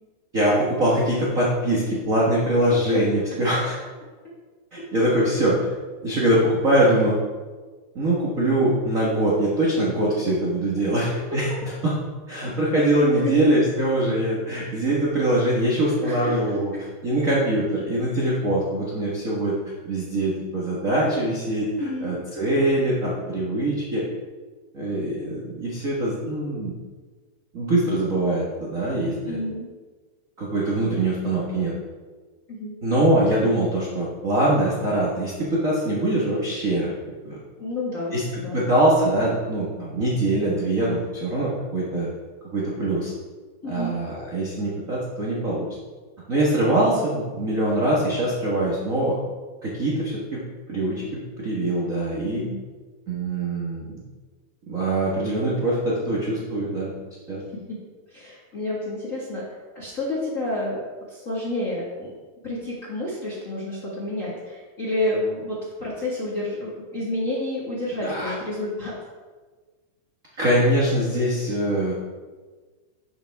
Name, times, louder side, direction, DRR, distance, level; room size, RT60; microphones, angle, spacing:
voice 1, 0.3-3.8 4.7-5.6 6.0-7.2 7.9-11.9 12.3-16.7 17.0-19.5 19.8-21.7 22.0-24.0 24.7-26.7 27.5-29.4 30.4-31.7 32.8-37.4 38.1-38.2 38.5-42.1 42.5-43.1 43.7-45.7 46.3-49.1 49.6-50.4 50.7-52.4 53.1-54.0 54.7-56.9 57.3-57.4 68.0-68.3 70.4-71.9, right 1 dB, 35° right, -6 dB, 1.4 m, -23 dB
voice 2, 16.0-16.4 16.7-16.8 21.8-22.1 29.3-29.7 32.5-32.8 37.6-38.7 43.6-44.0 52.3-52.6 57.5-57.8 58.1-59.4 59.7-62.1 62.4-69.0, left 1 dB, 30° left, -7 dB, 1.8 m, -29 dB
12.0 x 6.9 x 3.6 m, 1.4 s
omnidirectional pair, 3.4 m